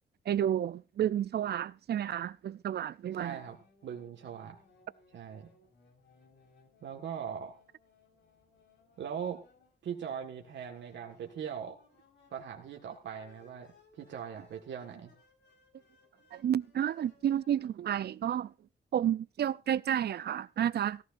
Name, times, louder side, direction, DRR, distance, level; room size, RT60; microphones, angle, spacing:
voice 1, 0.3-3.4 16.3-18.5 18.9-21.0, right 10 dB, 65° right, 0.5 m, -31 dB
voice 2, 3.1-4.6 5.1-5.5 6.8-7.5 9.0-9.4 9.8-11.8 12.3-13.7 14.0-15.1, right 8 dB, 90° right, 1.7 m, -40 dB
sound 1, 3.2-17.7, left 4 dB, 85° left, 4.8 m, -64 dB
17.0 x 14.5 x 2.6 m
wide cardioid pair, 120°, 18 cm